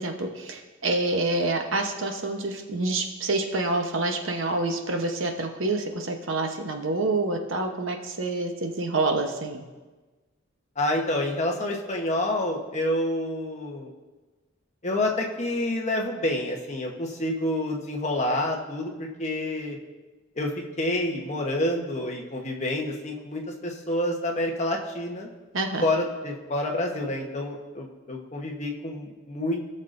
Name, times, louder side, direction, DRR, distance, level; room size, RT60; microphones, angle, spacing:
voice 1, 0.0-9.6 25.5-25.9, right 2 dB, 65° right, 4 dB, 1.0 m, -27 dB
voice 2, 10.8-13.9 14.8-19.8 20.3-20.5 20.8-25.3 25.8-29.7, left 1 dB, 35° left, 0 dB, 1.1 m, -28 dB
17.0 x 6.5 x 2.6 m, 1.3 s
head